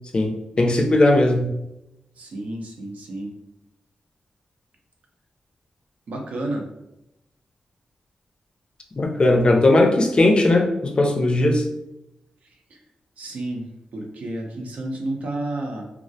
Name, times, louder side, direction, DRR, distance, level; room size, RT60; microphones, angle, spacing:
voice 1, 0.1-1.5 9.0-11.7, left 2 dB, 40° left, 2 dB, 0.4 m, -18 dB
voice 2, 2.2-3.3 6.1-6.6 12.7-12.8 13.2-13.6 13.9-15.8, right 1 dB, 70° right, 1 dB, 0.5 m, -30 dB
2.3 x 2.0 x 2.7 m, 0.89 s
cardioid pair, 70°, 3 cm